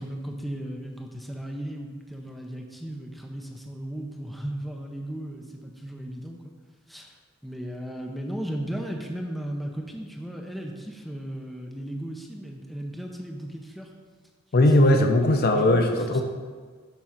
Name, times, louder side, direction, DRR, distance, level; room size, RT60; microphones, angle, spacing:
voice 1, 0.0-6.4 6.9-7.2 7.4-13.9 14.9-15.1 15.5-15.8 16.1-16.2, right 1 dB, ahead, 1 dB, 0.5 m, -36 dB
voice 2, 14.5-16.2, left 1 dB, 50° left, 5 dB, 0.6 m, -19 dB
7.2 x 3.7 x 5.8 m, 1.5 s
head